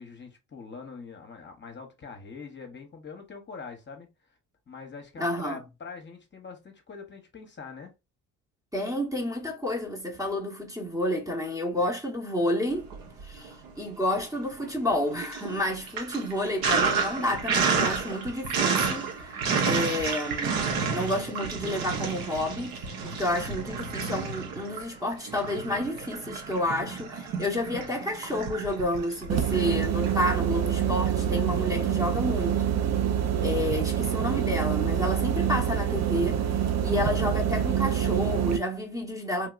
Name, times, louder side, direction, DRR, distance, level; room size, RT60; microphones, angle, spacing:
voice 1, 0.0-4.1 4.7-7.9, left 4 dB, 30° left, 0.9 m, -43 dB
voice 2, 5.2-5.6 8.7-12.9 13.2-20.6 20.9-32.7 33.4-39.5, left 1 dB, 10° right, 1.0 m, -30 dB
Sink (filling or washing), 12.8-13.7 14.0-30.1, right 5 dB, 70° right, 1.1 m, -31 dB
sound 1, 29.3-38.6, right 9 dB, 45° right, 0.6 m, -26 dB
3.2 x 2.8 x 2.4 m
supercardioid pair, 65°, 37 cm